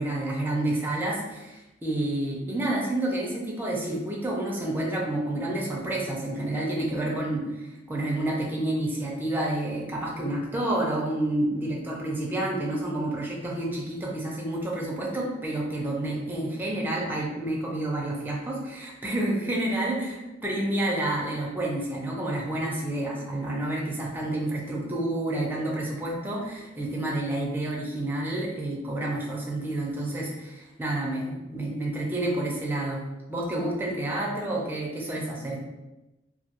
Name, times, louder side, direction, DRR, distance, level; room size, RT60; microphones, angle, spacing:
voice 1, 0.0-19.9 20.4-33.0 33.3-35.6, right 1 dB, 10° right, -3 dB, 0.4 m, -29 dB
2.2 x 2.2 x 2.8 m, 1.0 s
head